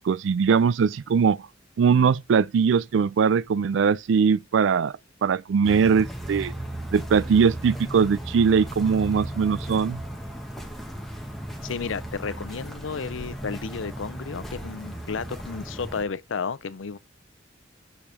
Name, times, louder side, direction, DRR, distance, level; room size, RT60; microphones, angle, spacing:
voice 1, 0.0-1.4 1.8-4.9 5.2-6.5 6.9-10.0, right 6 dB, 70° right, 0.3 m, -21 dB
sound 1, 5.6-16.0, right 1 dB, ahead, 1.4 m, -36 dB
voice 2, 11.6-17.0, left 5 dB, 85° left, 0.6 m, -32 dB
6.5 x 5.0 x 3.4 m
head